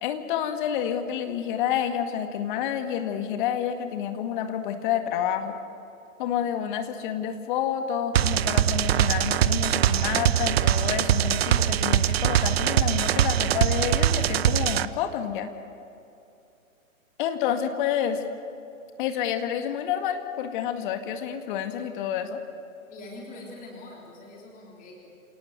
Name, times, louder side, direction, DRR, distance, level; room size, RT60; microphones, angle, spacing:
voice 1, 0.0-5.6 6.2-15.5 17.2-18.2 19.0-22.4, left 9 dB, 35° left, 7 dB, 2.0 m, -29 dB
sound 1, 8.2-14.9, right 11 dB, 45° right, 0.8 m, -22 dB
voice 2, 22.9-25.1, left 2 dB, 20° left, -2 dB, 3.5 m, -43 dB
28.0 x 18.5 x 8.2 m, 2.7 s
figure-of-eight pair, 125°, 42 cm